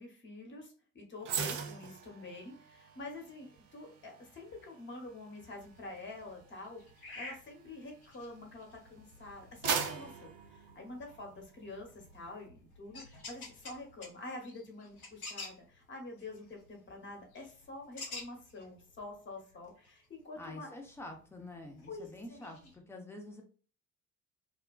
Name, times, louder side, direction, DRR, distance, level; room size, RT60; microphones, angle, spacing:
voice 1, 0.0-6.8 7.1-20.7 21.9-22.7, left 2 dB, 25° left, 2 dB, 0.9 m, -47 dB
sound 1, 1.2-8.6 9.1-11.5 11.8-12.0, right 7 dB, 45° right, 0.5 m, -41 dB
sound 2, 5.5-22.8, left 2 dB, 85° left, 0.6 m, -52 dB
voice 2, 20.4-23.4, left 1 dB, 5° left, 2 dB, 0.5 m, -47 dB
2.4 x 2.1 x 2.4 m, 0.42 s
figure-of-eight pair, 55°, 42 cm